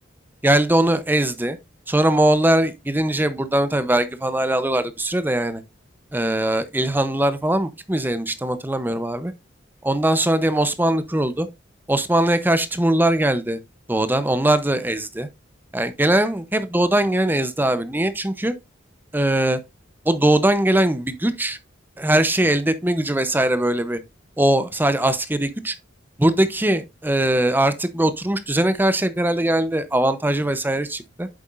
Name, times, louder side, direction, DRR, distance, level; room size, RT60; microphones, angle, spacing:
voice 1, 0.4-1.6 1.9-5.6 6.1-9.3 9.8-11.5 11.9-13.6 13.9-15.3 15.7-18.5 19.1-19.6 20.0-21.6 22.0-24.0 24.4-25.7 26.2-31.3, right 1 dB, 10° right, 0.7 m, -21 dB
8.7 x 6.9 x 2.5 m
head